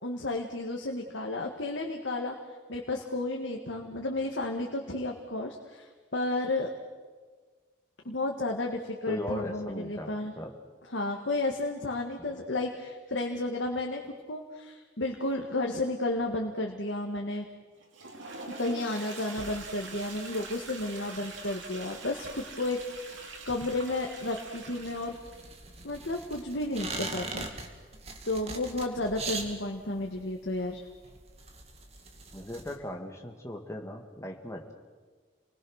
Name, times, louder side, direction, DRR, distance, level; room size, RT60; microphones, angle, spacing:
voice 1, 0.0-2.4 2.7-5.9 6.1-6.7 8.0-10.3 10.9-14.0 14.3-17.4 18.6-22.8 23.1-25.1 25.8-27.4 28.3-30.8, left 2 dB, 70° left, 1 dB, 1.8 m, -32 dB
voice 2, 9.1-10.5 12.3-12.4 32.3-34.7, left 1 dB, 15° left, 1 dB, 2.1 m, -38 dB
Toilet flush, 17.8-25.4, right 3 dB, 80° right, 3.5 m, -44 dB
sound 1, 19.4-32.8, right 3 dB, 30° right, 2.1 m, -43 dB
29.0 x 20.5 x 6.5 m, 1.5 s
head